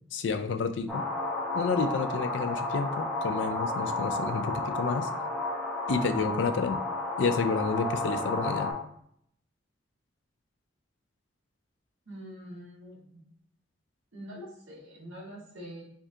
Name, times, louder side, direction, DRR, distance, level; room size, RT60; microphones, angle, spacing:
voice 1, 0.1-1.0 1.5-5.1 5.9-6.8 7.2-8.7, left 4 dB, 70° left, 9 dB, 0.4 m, -30 dB
sound 1, 0.9-8.7, left 2 dB, ahead, 1.0 m, -32 dB
voice 2, 12.0-13.2 14.1-15.8, equal, 85° right, -3 dB, 1.6 m, -44 dB
3.5 x 2.7 x 3.5 m, 0.68 s
head